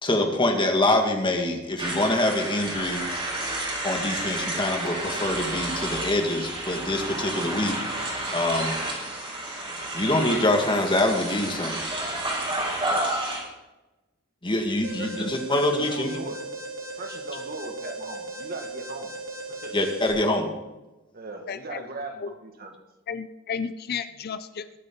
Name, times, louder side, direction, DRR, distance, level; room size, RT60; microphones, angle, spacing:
voice 1, 0.0-3.0 3.8-7.8 8.3-8.7 9.9-11.8 14.4-16.1 19.7-20.5, left 1 dB, 25° left, 3 dB, 1.9 m, -25 dB
sound 1, 1.8-13.4, right 1 dB, 25° right, 4.9 m, -30 dB
Alarm, 14.8-20.1, right 2 dB, 75° right, 3.3 m, -37 dB
voice 2, 15.0-16.4 17.0-19.2 19.5-19.8 21.1-22.8, right 2 dB, 50° right, 4 dB, 2.0 m, -39 dB
voice 3, 21.5-21.8 22.2-22.3 23.1-24.7, left 6 dB, 50° left, 12 dB, 0.5 m, -33 dB
21.0 x 9.1 x 3.9 m, 1.1 s
head